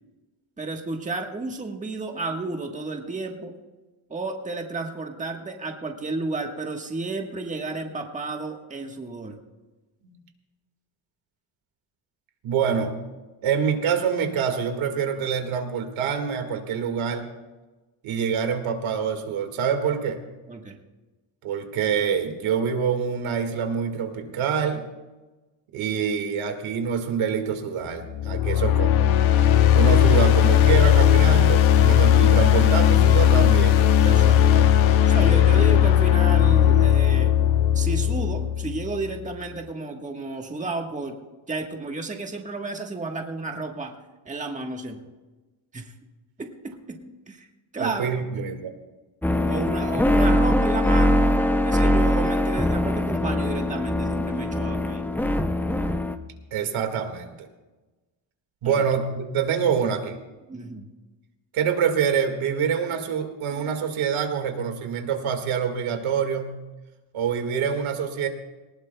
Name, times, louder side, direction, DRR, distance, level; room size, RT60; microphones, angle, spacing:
voice 1, 0.6-3.6 4.1-9.4 20.5-20.8 34.0-37.3 37.7-41.2 41.5-44.0 44.2-45.0 45.7-45.9 46.4-47.5 47.7-48.1 49.5-55.0 58.6-58.8 60.5-60.9, right 3 dB, 15° right, 3 dB, 1.4 m, -32 dB
voice 2, 12.4-12.9 13.4-17.3 18.0-20.2 21.4-24.8 25.7-29.2 29.7-33.9 47.8-48.7 56.5-57.3 58.6-60.2 61.5-66.6 67.1-68.3, right 7 dB, 75° right, 5 dB, 2.0 m, -26 dB
sound 1, 28.1-39.1, left 10 dB, 75° left, 1.0 m, -17 dB
sound 2, 49.2-56.2, left 1 dB, 5° left, 0.5 m, -22 dB
19.5 x 19.5 x 2.3 m, 1.2 s
cardioid pair, 130°, 48 cm